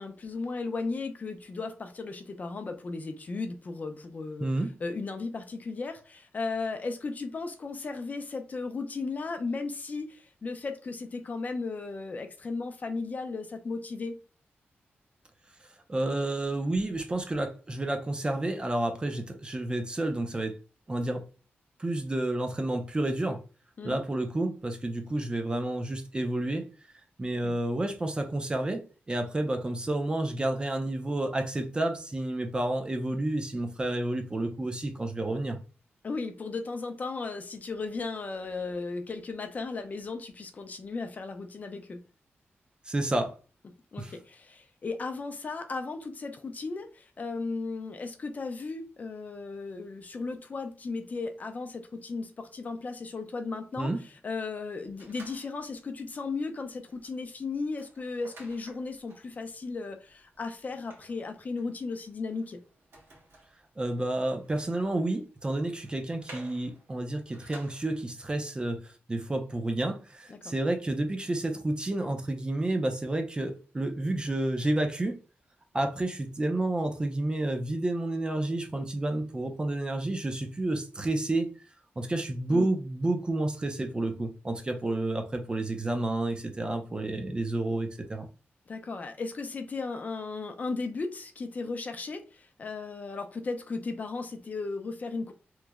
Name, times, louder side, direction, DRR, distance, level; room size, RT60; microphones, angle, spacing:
voice 1, 0.0-4.5 4.8-14.2 23.8-24.0 27.4-27.5 36.0-42.0 43.9-53.9 54.2-62.6 70.3-70.5 82.5-82.7 88.7-95.3, left 3 dB, 40° left, 0.4 m, -35 dB
voice 2, 15.9-20.5 20.9-21.2 21.8-23.4 23.8-26.6 27.2-28.8 29.1-35.6 42.9-43.4 44.0-44.1 53.8-54.0 63.8-75.2 75.7-81.5 82.0-88.3, right 2 dB, 20° right, 0.5 m, -30 dB
sound 1, 54.9-55.9 56.3-56.5 56.8-68.1, right 2 dB, 70° right, 1.4 m, -55 dB
3.0 x 2.0 x 3.5 m
wide cardioid pair, 145°, 4 cm